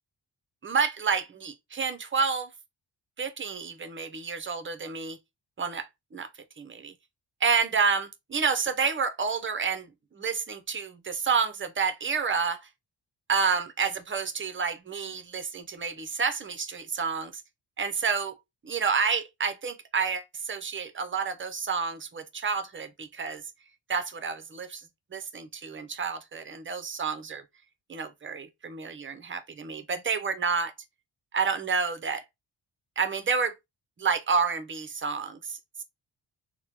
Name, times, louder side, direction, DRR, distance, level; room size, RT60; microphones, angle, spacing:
voice 1, 0.6-2.5 3.2-5.2 5.6-6.3 6.6-6.9 7.4-9.9 10.2-12.6 13.3-17.4 17.8-18.4 18.6-23.4 23.9-24.8 25.1-27.4 27.9-30.7 31.3-32.2 33.0-33.5 34.0-35.8, right 5 dB, 25° right, 0.5 m, -29 dB
3.3 x 2.1 x 2.9 m
cardioid pair, 80°, 47 cm